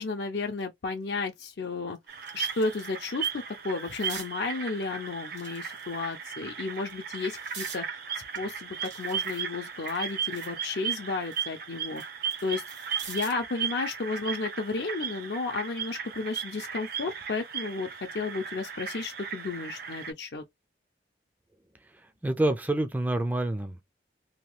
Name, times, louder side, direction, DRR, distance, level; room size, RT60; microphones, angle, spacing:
voice 1, 0.0-2.0 2.3-7.9 8.4-12.0 12.4-12.6 13.1-20.4, left 3 dB, 70° left, 0.5 m, -33 dB
sound 1, 1.0-1.1 1.6-3.0 3.4-4.3 5.2-6.1 6.7-7.8 8.3-10.6 11.0-13.5 14.8-15.0, right 6 dB, 85° right, 1.3 m, -47 dB
sound 2, 2.1-20.1, right 7 dB, 55° right, 0.6 m, -36 dB
voice 2, 22.2-23.8, right 1 dB, 10° right, 0.3 m, -27 dB
2.9 x 2.2 x 3.1 m
head